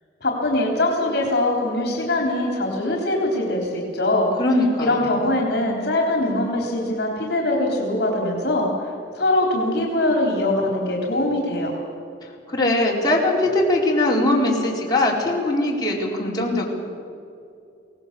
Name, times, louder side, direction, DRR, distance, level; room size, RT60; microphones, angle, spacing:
voice 1, 0.2-4.3 4.8-8.7 9.1-11.7, left 1 dB, 65° left, 0 dB, 3.7 m, -22 dB
voice 2, 4.4-5.1 12.5-16.6, left 1 dB, 25° left, -4 dB, 4.3 m, -21 dB
24.0 x 18.5 x 6.9 m, 2.5 s
head